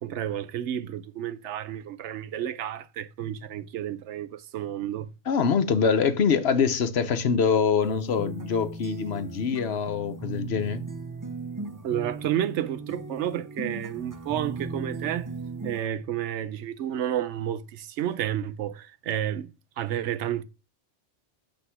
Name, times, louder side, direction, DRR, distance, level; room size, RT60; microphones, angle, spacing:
voice 1, 0.0-5.1 11.8-15.3 15.6-19.5 19.8-20.4, right 11 dB, 85° right, 0.9 m, -31 dB
voice 2, 5.3-10.8, left 6 dB, 65° left, 1.0 m, -24 dB
sound 1, 7.8-15.9, right 3 dB, 25° right, 0.5 m, -37 dB
8.1 x 3.6 x 5.6 m
omnidirectional pair, 1.2 m